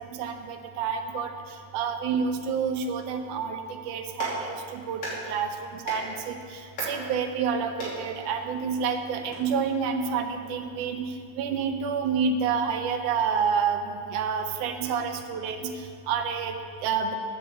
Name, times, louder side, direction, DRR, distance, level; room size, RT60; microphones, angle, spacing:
voice 1, 0.0-17.2, right 6 dB, 80° right, 6 dB, 2.1 m, -29 dB
Clapping, 3.9-9.4, equal, 45° left, 3.5 m, -39 dB
8.8 x 7.6 x 7.7 m, 2.3 s
omnidirectional pair, 3.7 m